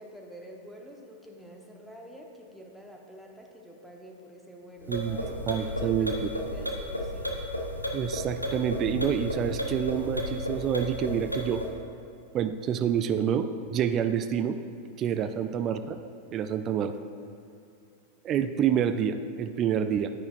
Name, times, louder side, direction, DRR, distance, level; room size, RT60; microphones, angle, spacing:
voice 1, 0.0-7.5 15.2-15.4, equal, ahead, -1 dB, 1.0 m, -47 dB
sound 1, 4.8-11.7, left 1 dB, 90° left, 0.7 m, -33 dB
voice 2, 5.5-6.1 7.9-11.6 12.3-14.6 15.0-16.0 16.3-16.9 18.2-20.1, right 8 dB, 30° right, 10 dB, 0.3 m, -28 dB
9.5 x 9.4 x 2.5 m, 2.5 s
figure-of-eight pair, 90°, 0 cm